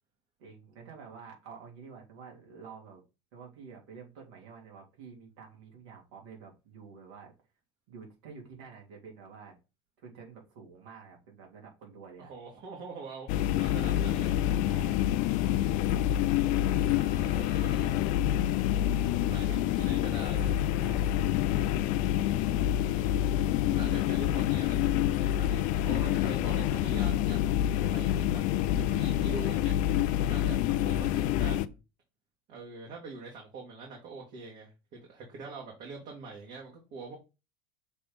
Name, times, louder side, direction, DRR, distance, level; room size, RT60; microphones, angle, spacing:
voice 1, 0.4-3.0 3.3-7.3 7.9-9.5 10.0-12.3 14.7-15.0 20.8-21.1, right 6 dB, 80° right, 0 dB, 3.0 m, -49 dB
voice 2, 12.3-14.4 16.9-18.0 18.8-20.5 22.7-23.4 23.7-24.8 25.1-25.6 25.8-28.4 28.7-29.8 30.3-31.8 32.5-37.2, right 4 dB, 60° right, -1 dB, 2.2 m, -44 dB
sound 1, 13.3-31.7, left 12 dB, 65° left, 0.5 m, -27 dB
6.7 x 3.4 x 4.1 m, 0.28 s
supercardioid pair, 95°, 14 cm